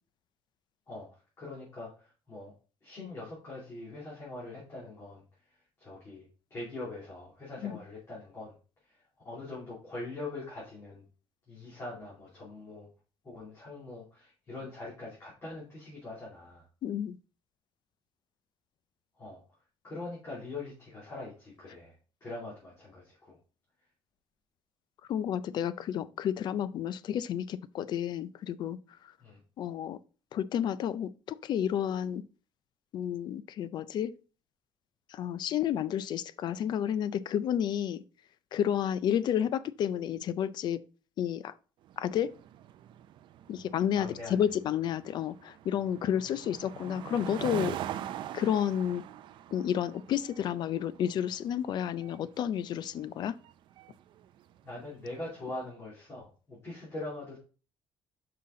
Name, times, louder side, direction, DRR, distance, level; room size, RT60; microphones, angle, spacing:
voice 1, 1.4-2.5 2.8-5.2 5.8-8.5 8.9-9.0 9.2-11.0 11.5-12.9 13.2-16.7 19.2-19.4 19.8-21.9 22.2-23.4 29.2-29.4 44.0-44.3 54.6-57.4, left 2 dB, 30° left, 2.8 m, -42 dB
voice 2, 16.8-17.2 25.1-28.8 29.6-30.0 30.3-32.2 32.9-34.1 35.1-38.0 38.5-40.8 41.2-41.5 42.0-42.3 43.5-47.8 48.3-49.0 49.5-53.3, left 9 dB, 50° left, 0.4 m, -31 dB
sound 1, 41.9-55.4, right 11 dB, 60° right, 0.4 m, -43 dB
5.7 x 5.7 x 3.7 m
cardioid pair, 155°, 9 cm